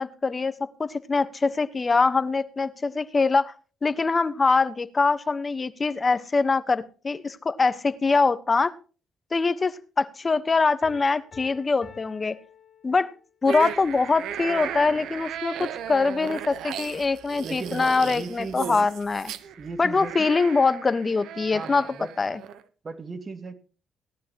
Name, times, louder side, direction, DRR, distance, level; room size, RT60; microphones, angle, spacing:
voice 1, 0.0-3.5 3.8-8.7 9.3-12.3 12.8-13.1 13.4-19.3 19.8-21.8 22.2-22.4, left 4 dB, 30° left, 13 dB, 1.2 m, -23 dB
Piano, 10.8-13.4, left 7 dB, 50° left, 3.6 m, -49 dB
sound 1, 13.4-22.6, right 9 dB, 80° right, 1.0 m, -36 dB
voice 2, 17.4-18.9 19.6-20.3 21.5-22.1 22.8-23.5, right 4 dB, 35° right, 8 dB, 2.3 m, -37 dB
18.0 x 12.0 x 3.0 m, 0.36 s
cardioid pair, 90°, 0 cm